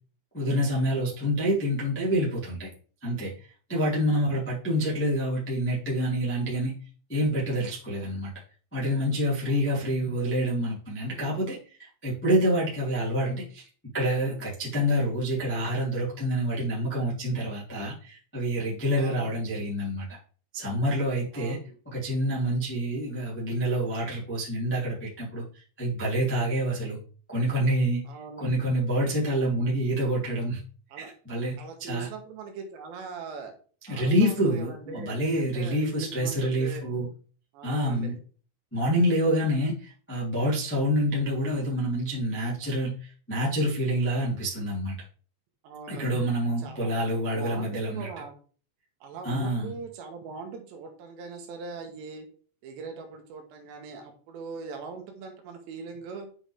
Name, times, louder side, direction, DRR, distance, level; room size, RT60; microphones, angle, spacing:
voice 1, 0.3-2.7 3.0-3.3 3.7-6.7 7.1-8.3 8.7-13.7 13.9-20.1 20.5-21.6 21.8-27.0 27.3-28.0 28.4-30.6 30.9-31.5 31.9-32.1 33.9-37.1 37.6-38.1 38.7-44.9 45.9-48.1 49.2-49.7, equal, 5° left, -6 dB, 1.0 m, -27 dB
voice 2, 3.7-4.2 9.4-10.2 18.9-19.4 21.3-21.8 28.1-28.6 30.9-31.1 31.6-33.5 33.9-36.9 37.5-38.2 45.6-46.2 46.6-46.9 47.3-48.3 49.0-52.3 52.6-56.3, right 4 dB, 75° right, 4 dB, 3.3 m, -41 dB
7.9 x 6.0 x 3.4 m, 0.40 s
omnidirectional pair, 5.4 m